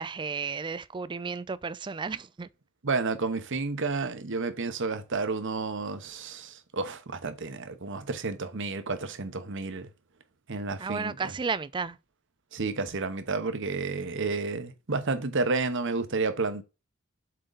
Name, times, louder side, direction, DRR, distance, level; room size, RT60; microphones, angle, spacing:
voice 1, 0.0-2.5 10.8-12.0, right 5 dB, 20° right, 0.3 m, -33 dB
voice 2, 2.8-9.9 10.5-11.2 12.5-16.6, right 3 dB, 60° right, 1.0 m, -31 dB
7.6 x 3.9 x 4.0 m
head